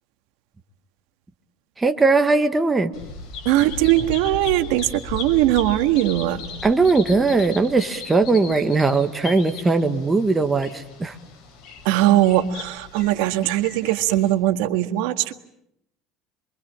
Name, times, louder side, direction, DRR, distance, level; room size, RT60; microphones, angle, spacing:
voice 1, 1.8-2.9 6.6-11.1, right 3 dB, 10° right, 7 dB, 1.4 m, -19 dB
Bird vocalization bird call bird song, 2.9-14.3, left 4 dB, 50° left, 7.3 m, -37 dB
voice 2, 3.4-6.4 11.8-15.3, right 14 dB, 80° right, 10 dB, 1.6 m, -20 dB
28.0 x 24.0 x 8.8 m, 0.79 s
cardioid pair, 155°, 0 cm